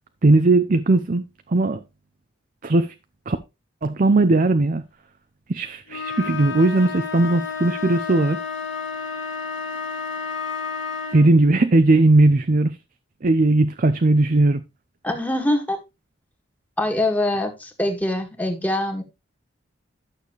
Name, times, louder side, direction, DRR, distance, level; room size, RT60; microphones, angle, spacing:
voice 1, 0.2-1.2 1.5-1.8 2.6-2.9 3.3-3.4 3.8-4.8 5.5-8.4 11.1-12.8 13.2-14.6, right 2 dB, 45° right, 0.6 m, -18 dB
sound 1, 5.9-11.4, left 5 dB, 80° left, 1.7 m, -31 dB
voice 2, 15.0-15.8 16.8-19.0, left 1 dB, 10° left, 1.9 m, -23 dB
12.0 x 6.7 x 3.2 m
head